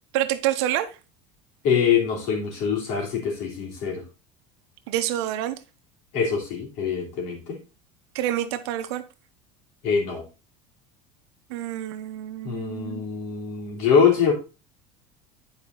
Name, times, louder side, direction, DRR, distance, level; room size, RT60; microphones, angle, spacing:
voice 1, 0.1-0.9 4.9-5.6 8.1-9.0 11.5-13.0, right 12 dB, 75° right, 1.1 m, -27 dB
voice 2, 1.6-4.0 6.1-7.6 9.8-10.2 12.4-14.3, left 6 dB, 55° left, 3.2 m, -24 dB
9.7 x 5.0 x 4.0 m
cardioid pair, 170°, 14 cm